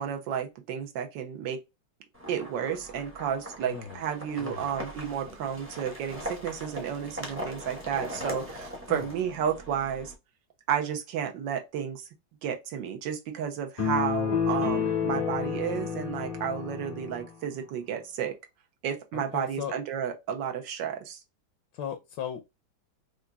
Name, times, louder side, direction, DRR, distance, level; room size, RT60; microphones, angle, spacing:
voice 1, 0.0-1.6 2.3-10.1 10.7-12.0 12.4-18.3 18.8-21.2, right 8 dB, 70° right, 1.4 m, -32 dB
sound 1, 2.1-10.1, equal, 10° right, 0.7 m, -40 dB
voice 2, 3.6-4.0 4.4-4.7 8.9-9.1 19.1-19.7 21.7-22.5, left 8 dB, 75° left, 1.1 m, -37 dB
sound 2, 13.8-17.3, left 6 dB, 45° left, 0.4 m, -29 dB
4.8 x 2.5 x 2.2 m
omnidirectional pair, 2.2 m